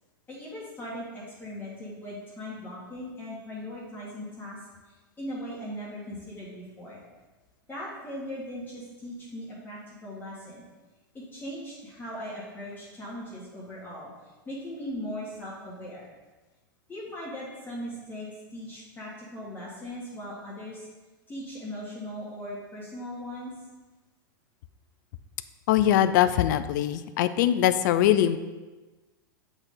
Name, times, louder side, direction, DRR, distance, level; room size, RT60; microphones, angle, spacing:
voice 1, 0.3-4.6 4.8-7.0 7.7-10.6 11.1-16.1 16.9-20.9 21.3-23.5, equal, 15° left, -7 dB, 1.8 m, -39 dB
voice 2, 25.7-28.4, left 11 dB, 60° left, 12 dB, 0.4 m, -22 dB
7.8 x 4.0 x 3.8 m, 1.2 s
hypercardioid pair, 110°, 11 cm